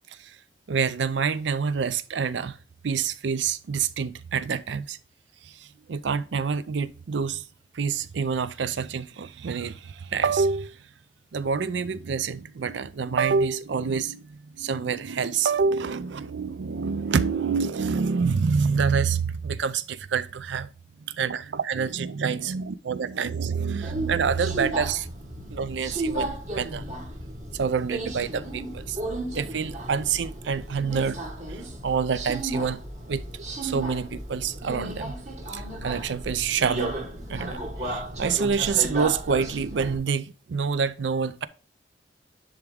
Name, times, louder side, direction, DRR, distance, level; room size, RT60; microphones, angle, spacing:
voice 1, 0.7-2.6 2.8-5.0 5.4-7.4 7.7-10.8 11.3-20.7 21.0-25.1 25.5-26.9 27.5-29.0 29.3-31.2 31.5-32.8 33.1-35.1 35.5-37.0 37.3-41.5, right 5 dB, 85° right, 0.5 m, -27 dB
Subway metro underground, 23.8-40.0, right 1 dB, 40° right, 1.5 m, -34 dB
10.5 x 3.6 x 3.4 m
head